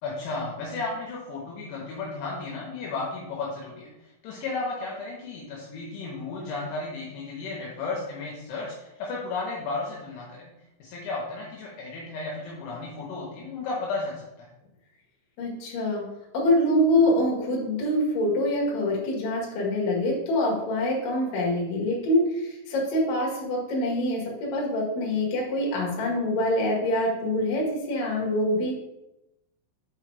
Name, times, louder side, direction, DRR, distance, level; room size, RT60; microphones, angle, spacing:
voice 1, 0.0-10.5 10.8-14.5, left 3 dB, 75° left, -3 dB, 3.0 m, -34 dB
voice 2, 15.4-16.0 16.3-28.7, left 1 dB, 55° left, -3 dB, 2.6 m, -25 dB
7.1 x 4.8 x 3.3 m, 0.93 s
omnidirectional pair, 5.9 m